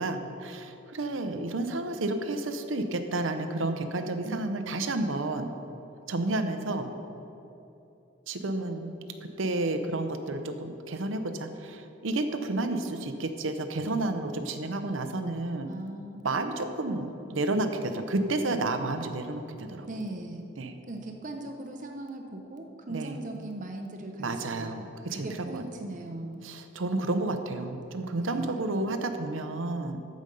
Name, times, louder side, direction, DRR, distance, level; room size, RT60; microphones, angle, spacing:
voice 1, 0.0-5.5 6.1-6.9 8.3-8.9 9.2-15.7 16.2-19.9 20.6-20.7 22.9-23.2 24.2-25.3 25.5-25.6 26.4-30.0, right 2 dB, 90° right, 7 dB, 0.8 m, -31 dB
voice 2, 15.6-16.3 19.9-20.5 20.9-24.7 25.1-26.4 28.2-28.6, right 2 dB, 40° right, 3 dB, 0.7 m, -39 dB
14.0 x 5.2 x 5.3 m, 2.9 s
head